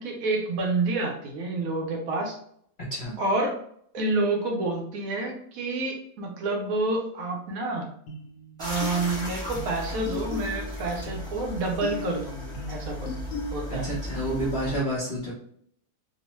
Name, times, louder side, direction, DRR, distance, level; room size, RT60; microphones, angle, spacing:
voice 1, 0.0-2.4 3.2-3.6 3.9-7.8 8.6-13.1 13.5-13.9, right 2 dB, 70° right, 1 dB, 0.9 m, -28 dB
sound 1, 8.1-14.0, left 2 dB, 75° left, 1.2 m, -38 dB
sound 2, 8.6-14.8, equal, 5° left, 0.6 m, -36 dB
voice 2, 13.7-15.3, right 1 dB, 50° left, -8 dB, 0.6 m, -29 dB
2.9 x 2.0 x 3.0 m, 0.66 s
omnidirectional pair, 1.7 m